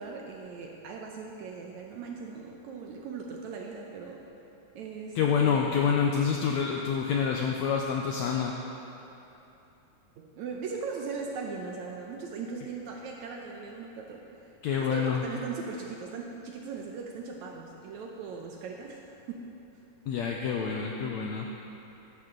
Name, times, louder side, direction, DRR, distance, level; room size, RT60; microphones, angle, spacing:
voice 1, 0.0-4.2 4.7-5.2 5.4-5.8 10.2-14.5 14.8-19.5, right 5 dB, 75° right, 1 dB, 1.8 m, -39 dB
voice 2, 5.1-8.6 14.6-15.2 20.1-21.5, left 7 dB, 85° left, 0 dB, 1.6 m, -27 dB
14.5 x 11.5 x 3.8 m, 2.9 s
omnidirectional pair, 4.0 m